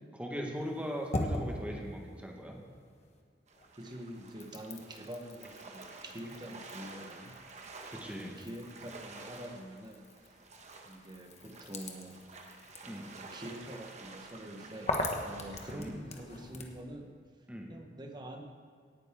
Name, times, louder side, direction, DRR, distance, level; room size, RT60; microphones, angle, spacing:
voice 1, 0.1-2.6 7.9-8.3 12.9-13.1 15.7-16.0 17.5-17.7, equal, 10° right, 0 dB, 1.6 m, -39 dB
sound 1, 0.5-3.2 3.5-16.8, left 1 dB, 40° left, 1.2 m, -42 dB
sound 2, 3.5-15.9, right 3 dB, 40° right, 1.2 m, -51 dB
voice 2, 3.7-7.8 8.1-10.0 10.9-12.2 12.7-17.1 17.7-18.4, right 1 dB, 25° right, 3 dB, 1.2 m, -46 dB
18.0 x 9.3 x 3.7 m, 2.1 s
head